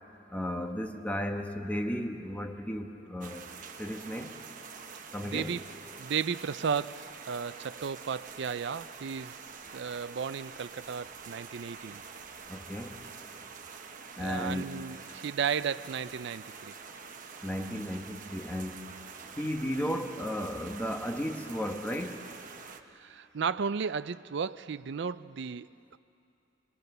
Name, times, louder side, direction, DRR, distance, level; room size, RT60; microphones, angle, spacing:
voice 1, 0.3-3.5 3.8-4.4 5.1-5.6 12.5-13.0 14.1-14.8 17.4-22.3, equal, 10° left, 3 dB, 1.2 m, -35 dB
sound 1, 3.2-22.8, right 5 dB, 45° right, 1.1 m, -46 dB
voice 2, 5.3-5.6 6.0-9.4 9.7-12.0 14.2-16.7 19.8-19.9 22.9-26.0, right 6 dB, 65° right, 15 dB, 0.5 m, -34 dB
27.5 x 21.0 x 6.7 m, 2.7 s
head